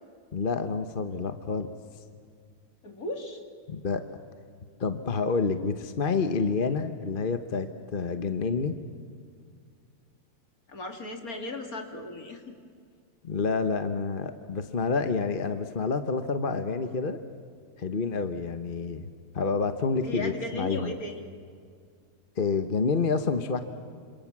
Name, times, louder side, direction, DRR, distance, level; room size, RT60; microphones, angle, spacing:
voice 1, 0.3-1.7 3.7-4.0 4.8-7.7 7.9-8.8 13.2-17.2 17.8-19.1 19.3-21.0 22.4-23.6, left 4 dB, 35° left, 9 dB, 1.2 m, -28 dB
voice 2, 2.8-3.4 10.7-12.5 20.0-21.2, left 2 dB, 60° left, 4 dB, 3.1 m, -36 dB
27.0 x 26.5 x 7.4 m, 2.1 s
omnidirectional pair, 1.7 m